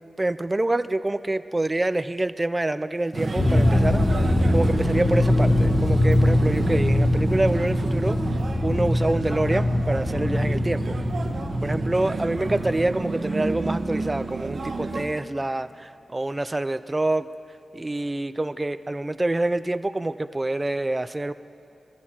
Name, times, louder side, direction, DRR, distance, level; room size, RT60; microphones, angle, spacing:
voice 1, 0.2-4.0 4.5-11.0 11.6-17.3 17.7-21.3, right 2 dB, 20° right, 12 dB, 0.4 m, -26 dB
sound 1, 3.1-15.1, right 3 dB, 55° right, 1.1 m, -30 dB
sound 2, 3.4-12.9, left 1 dB, 20° left, 0.8 m, -23 dB
22.0 x 14.5 x 2.9 m, 2.7 s
wide cardioid pair, 105°, 0 cm